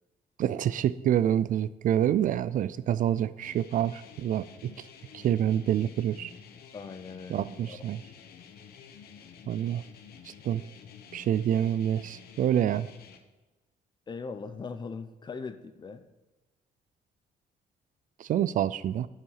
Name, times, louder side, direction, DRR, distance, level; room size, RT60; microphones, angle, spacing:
voice 1, 0.4-4.7 5.1-6.3 7.3-8.0 9.5-9.8 10.3-10.6 11.1-12.9 18.2-19.1, right 10 dB, 55° right, 16 dB, 0.4 m, -27 dB
sound 1, 3.4-13.2, left 7 dB, 75° left, 1.0 m, -51 dB
voice 2, 6.7-7.8 14.1-16.0, left 4 dB, 30° left, 11 dB, 0.7 m, -40 dB
13.0 x 5.6 x 5.6 m, 1.2 s
cardioid pair, 155°, 16 cm